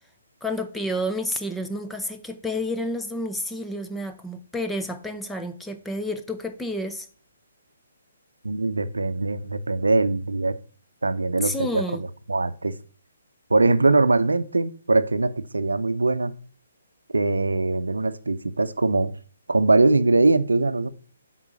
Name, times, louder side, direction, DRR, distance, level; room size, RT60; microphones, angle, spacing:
voice 1, 0.4-7.1 11.4-12.0, left 1 dB, 5° left, 0.6 m, -30 dB
voice 2, 8.4-10.6 11.0-12.7 13.5-16.3 17.1-19.1 19.5-20.9, right 3 dB, 75° right, 0.6 m, -22 dB
8.2 x 3.8 x 6.2 m
figure-of-eight pair, 135°, 0 cm